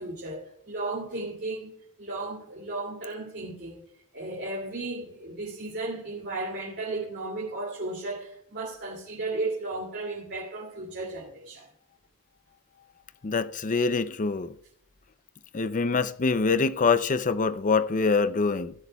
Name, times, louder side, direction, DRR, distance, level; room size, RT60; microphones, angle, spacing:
voice 1, 0.0-3.9 4.1-11.7, right 2 dB, 50° right, 2.5 m, -35 dB
voice 2, 13.2-14.5 15.5-18.7, left 4 dB, 35° left, 0.5 m, -25 dB
16.0 x 11.0 x 2.3 m
head